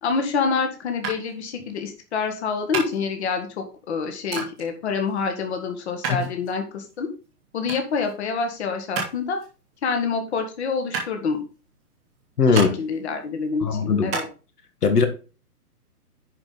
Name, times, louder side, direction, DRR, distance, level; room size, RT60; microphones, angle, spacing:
voice 1, 0.0-7.1 7.5-9.4 9.8-11.4 12.5-14.3, left 5 dB, 45° left, 1.8 m, -27 dB
sound 1, 1.0-14.3, right 5 dB, 5° right, 0.5 m, -34 dB
voice 2, 12.4-12.7 13.6-14.2 14.8-15.1, left 5 dB, 70° left, 1.8 m, -19 dB
10.5 x 5.2 x 3.9 m
hypercardioid pair, 155°, 47 cm